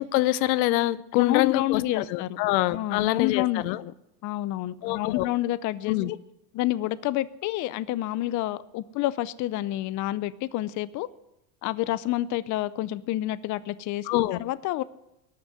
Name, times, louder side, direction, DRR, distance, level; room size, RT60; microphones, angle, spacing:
voice 1, 0.0-3.8 4.8-5.3 5.9-6.1 14.1-14.4, left 16 dB, 85° left, 18 dB, 0.8 m, -25 dB
voice 2, 1.2-2.4 2.7-3.9 4.2-6.2 6.5-11.1 11.6-14.8, left 15 dB, 35° left, 17 dB, 0.5 m, -29 dB
18.5 x 6.5 x 9.6 m, 0.87 s
supercardioid pair, 125°, 50 cm